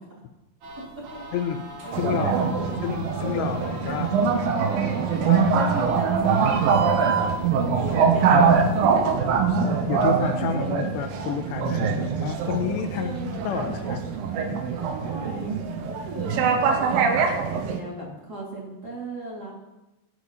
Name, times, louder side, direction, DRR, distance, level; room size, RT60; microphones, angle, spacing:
sound 1, 0.6-8.9, right 4 dB, 50° right, 2.7 m, -35 dB
voice 1, 1.3-1.7 2.0-2.4 2.8-4.2 4.8-4.9 5.3-5.5 6.8-7.4 9.9-14.0 14.5-14.6, left 9 dB, 80° left, 7 dB, 2.9 m, -30 dB
voice 2, 1.8-3.2 5.5-6.8 7.5-9.1 12.9-13.4 15.0-15.6 15.9-19.5, right 2 dB, 25° right, -5 dB, 3.0 m, -36 dB
sound 2, 1.9-17.8, right 5 dB, 70° right, 2.4 m, -23 dB
17.0 x 9.6 x 4.2 m, 1.0 s
omnidirectional pair, 5.0 m